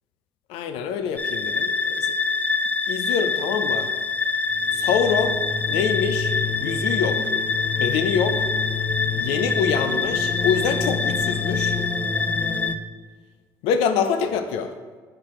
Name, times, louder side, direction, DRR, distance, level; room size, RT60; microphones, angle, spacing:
voice 1, 0.5-2.2 2.9-3.9 4.7-5.4 5.7-6.4 6.6-7.3 7.8-8.5 9.2-11.8 13.6-14.7, left 7 dB, 80° left, 9 dB, 0.5 m, -25 dB
sound 1, 1.2-12.8, left 4 dB, 15° left, 0.4 m, -24 dB
5.9 x 5.0 x 4.3 m, 1.5 s
supercardioid pair, 70°, 10 cm